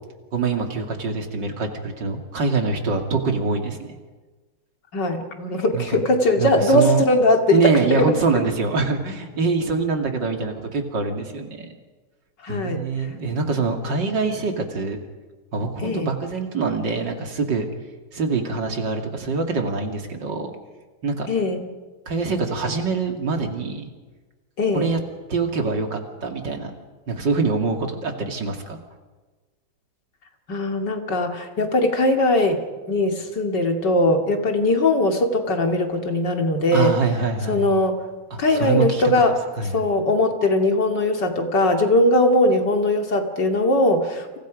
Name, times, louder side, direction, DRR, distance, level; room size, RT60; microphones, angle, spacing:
voice 1, 0.3-4.0 5.7-6.1 6.4-7.0 7.5-11.7 12.5-15.0 15.5-17.7 18.1-20.5 21.0-21.3 22.1-23.9 24.7-25.0 25.3-26.7 27.1-28.8 36.7-37.6 38.3-39.0 39.6-39.7, right 4 dB, 70° right, 4 dB, 3.1 m, -24 dB
voice 2, 4.9-8.1 12.4-12.8 15.8-16.1 21.3-21.7 24.6-24.9 30.5-32.6 32.9-36.9 37.5-38.0 38.4-39.4 39.6-44.4, left 1 dB, 65° left, 4 dB, 3.1 m, -20 dB
30.0 x 27.0 x 5.2 m, 1.3 s
omnidirectional pair, 2.0 m